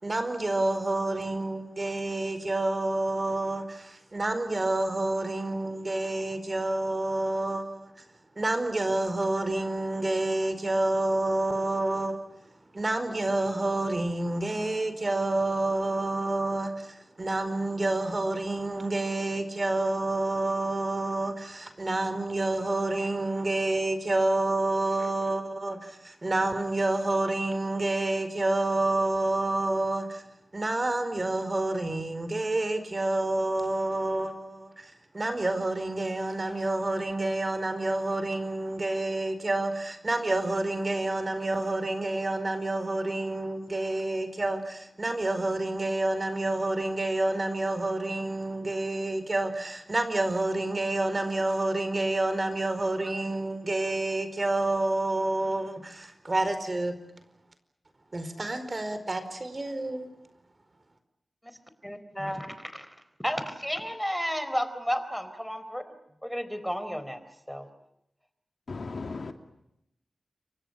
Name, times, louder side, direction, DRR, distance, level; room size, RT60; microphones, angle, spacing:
voice 1, 0.0-7.9 8.4-12.3 12.7-30.2 30.5-57.0 58.1-60.1, right 2 dB, 35° right, 4.7 m, -28 dB
voice 2, 61.8-62.9 63.2-65.9 66.2-67.2 67.5-67.7, equal, 5° left, 4.3 m, -32 dB
voice 3, 68.7-69.3, left 3 dB, 65° left, 2.8 m, -36 dB
29.0 x 24.0 x 6.5 m
wide cardioid pair, 70°, 0 cm